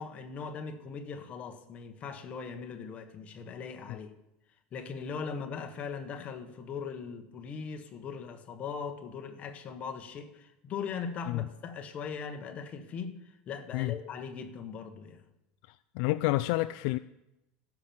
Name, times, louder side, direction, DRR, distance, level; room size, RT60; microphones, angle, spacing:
voice 1, 0.0-4.1 4.7-15.2, left 6 dB, 30° left, 1.3 m, -40 dB
voice 2, 16.0-17.0, left 19 dB, 60° left, 0.3 m, -28 dB
16.0 x 6.0 x 7.1 m
cardioid pair, 160°, 5 cm